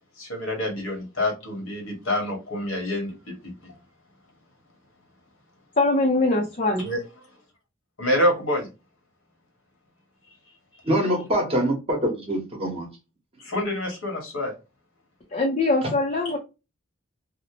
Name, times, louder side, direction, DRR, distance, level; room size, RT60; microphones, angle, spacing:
voice 1, 0.2-3.8 6.8-7.0 8.0-8.7 13.4-14.5, left 1 dB, 80° left, 1.2 m, -27 dB
voice 2, 5.8-6.9 15.3-16.4, left 2 dB, 35° left, 0.5 m, -22 dB
voice 3, 10.8-12.9 15.8-15.9, equal, 30° right, 0.9 m, -24 dB
2.7 x 2.0 x 2.8 m
head